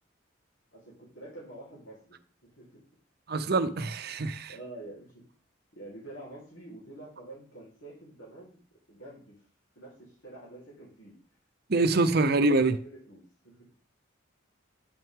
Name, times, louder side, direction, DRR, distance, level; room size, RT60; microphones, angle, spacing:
voice 1, 0.7-2.8 4.1-4.2 4.5-5.2 5.7-8.6 8.9-9.4 9.8-11.1 11.7-13.7, right 2 dB, 75° left, -6 dB, 3.6 m, -47 dB
voice 2, 3.3-4.5 11.7-12.7, right 3 dB, 50° right, 10 dB, 0.6 m, -25 dB
8.8 x 5.7 x 3.6 m, 0.42 s
head